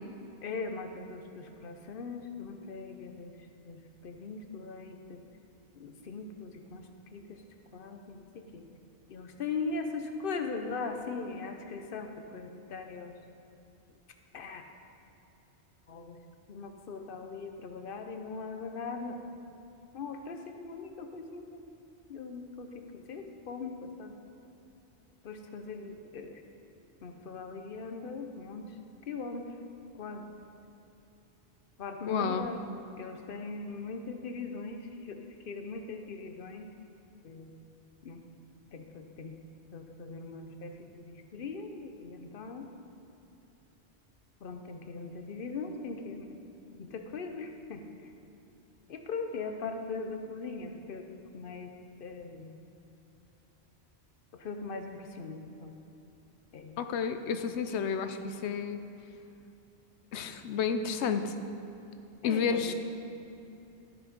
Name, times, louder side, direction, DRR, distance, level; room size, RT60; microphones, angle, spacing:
voice 1, 0.4-3.4 3.6-5.2 5.7-6.9 7.1-7.4 7.7-8.7 9.1-13.1 14.3-14.6 15.9-16.2 16.5-19.2 19.9-21.6 22.1-24.1 25.2-26.4 27.0-28.7 29.1-29.5 30.0-30.3 31.8-32.6 33.0-36.7 37.2-37.5 38.0-38.2 38.7-39.4 39.7-42.7 44.4-46.3 46.8-48.1 48.9-51.0 51.3-51.7 52.0-52.6 54.3-55.7 56.5-56.8 62.2-62.7, left 4 dB, 55° left, 5 dB, 0.9 m, -40 dB
voice 2, 32.1-32.5 56.8-58.8 60.1-61.3 62.2-62.7, left 6 dB, 80° left, 9 dB, 0.9 m, -31 dB
13.0 x 6.0 x 5.1 m, 2.9 s
omnidirectional pair, 1.1 m